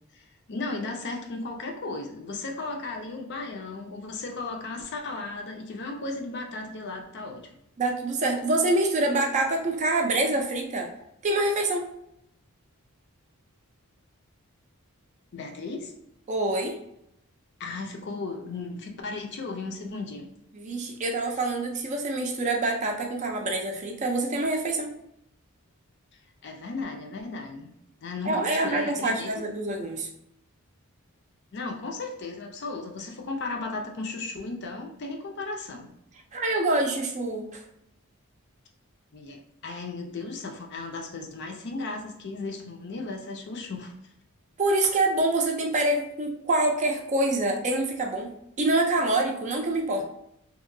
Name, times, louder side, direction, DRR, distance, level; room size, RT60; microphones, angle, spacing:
voice 1, 0.1-7.5 15.3-15.9 17.6-20.3 26.4-27.7 28.0-29.4 31.5-35.9 39.1-43.9, left 3 dB, 50° left, 3 dB, 0.5 m, -35 dB
voice 2, 7.8-10.9 11.2-11.8 16.3-16.7 20.5-24.9 28.3-30.1 36.3-37.6 44.6-48.3 48.6-50.0, right 2 dB, 35° right, 3 dB, 0.4 m, -26 dB
2.9 x 2.6 x 2.6 m, 0.78 s
head